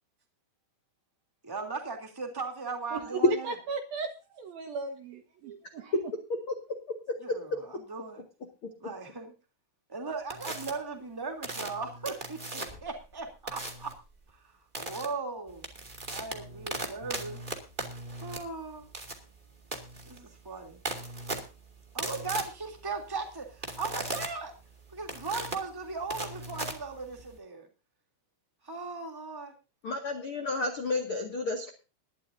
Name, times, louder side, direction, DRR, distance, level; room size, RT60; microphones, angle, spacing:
voice 1, 1.4-3.6 7.2-8.2 8.8-9.3 9.9-13.9 14.4-15.6 16.1-17.4 18.2-18.8 20.1-20.8 21.9-24.5 24.9-27.7 28.6-29.5, right 4 dB, 10° right, 1.4 m, -38 dB
voice 2, 2.9-5.9, right 4 dB, 65° right, 2.6 m, -37 dB
voice 3, 7.3-7.6 29.8-31.7, left 3 dB, 60° left, 1.4 m, -32 dB
sound 1, 10.3-10.7 11.4-12.9 13.5-13.9 14.7-15.0 15.5-27.4, right 2 dB, 50° right, 0.6 m, -38 dB
20.5 x 12.0 x 2.7 m
omnidirectional pair, 5.9 m